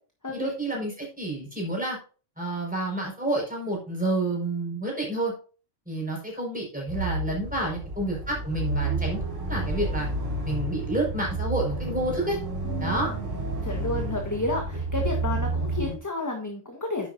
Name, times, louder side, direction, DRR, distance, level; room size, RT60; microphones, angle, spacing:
voice 1, 0.3-2.0 2.4-5.3 5.9-9.2 9.5-10.1 10.4-12.4 12.8-13.1, right 1 dB, 5° right, -3 dB, 4.8 m, -29 dB
sound 1, 6.9-15.9, right 2 dB, 70° right, 4.1 m, -30 dB
voice 2, 12.6-13.4 13.6-17.1, left 2 dB, 15° left, 2 dB, 1.2 m, -31 dB
10.0 x 8.0 x 2.6 m, 0.37 s
omnidirectional pair, 1.3 m